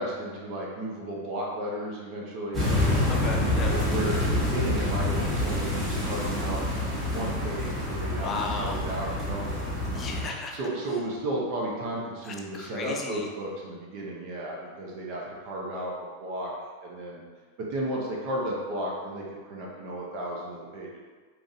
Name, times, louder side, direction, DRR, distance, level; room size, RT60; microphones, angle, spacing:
voice 1, 0.0-2.6 3.6-6.6 6.9-8.3 8.6-9.5 10.5-16.5 16.8-17.2 17.7-21.0, right 1 dB, 45° right, -3 dB, 0.8 m, -34 dB
sound 1, 2.5-10.2, left 1 dB, 20° right, 1.4 m, -27 dB
voice 2, 3.1-3.7 8.2-8.8 9.9-10.6 12.2-13.3, left 3 dB, 25° left, 1 dB, 0.6 m, -35 dB
5.0 x 3.0 x 2.5 m, 1.5 s
figure-of-eight pair, 90°, 0 cm